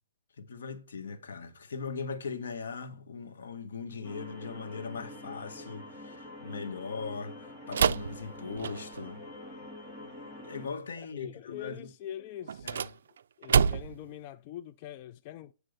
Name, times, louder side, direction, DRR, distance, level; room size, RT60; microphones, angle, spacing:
voice 1, 0.4-9.2 10.4-11.9 12.6-12.9, left 5 dB, 80° left, 1.5 m, -39 dB
sound 1, 4.0-10.7, left 1 dB, 10° left, 1.8 m, -46 dB
sound 2, 7.7-9.1 12.4-14.1, right 7 dB, 70° right, 0.4 m, -28 dB
voice 2, 11.1-12.7 13.4-15.5, left 11 dB, 30° left, 0.3 m, -43 dB
9.2 x 3.4 x 6.6 m
hypercardioid pair, 165°, 0 cm